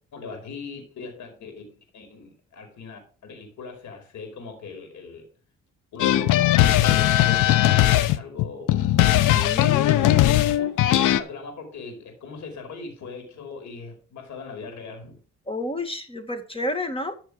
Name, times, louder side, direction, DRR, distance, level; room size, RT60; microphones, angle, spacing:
voice 1, 0.1-5.3 5.9-8.8 10.4-15.2, left 4 dB, 70° left, 4 dB, 5.0 m, -39 dB
sound 1, 6.0-11.2, left 13 dB, 85° left, 0.8 m, -19 dB
voice 2, 9.3-10.4 15.5-17.1, left 1 dB, 20° left, 7 dB, 2.1 m, -31 dB
13.5 x 6.2 x 5.0 m, 0.40 s
cardioid pair, 90°, 30 cm